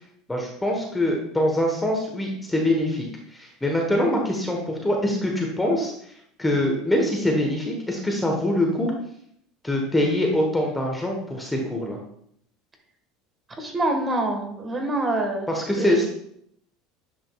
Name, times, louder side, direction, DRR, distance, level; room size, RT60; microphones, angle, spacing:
voice 1, 0.3-5.9 6.4-8.9 9.6-12.0 15.5-16.1, left 1 dB, 10° left, 0 dB, 1.1 m, -24 dB
voice 2, 13.6-15.5 15.8-16.1, right 2 dB, 25° right, 3 dB, 1.4 m, -25 dB
9.4 x 5.1 x 2.3 m, 0.69 s
supercardioid pair, 120°, 0 cm